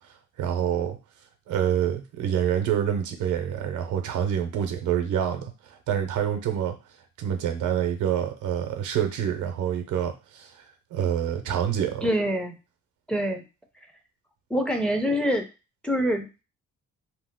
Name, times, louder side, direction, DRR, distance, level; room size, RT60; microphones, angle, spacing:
voice 1, 0.4-1.0 1.5-6.8 7.2-10.5 10.9-12.1, right 9 dB, 85° right, 6 dB, 0.7 m, -27 dB
voice 2, 12.0-12.6 13.1-13.4 14.5-15.5 15.8-16.4, equal, 5° left, 4 dB, 0.5 m, -25 dB
2.8 x 2.0 x 3.6 m, 0.29 s
cardioid pair, 90°, 30 cm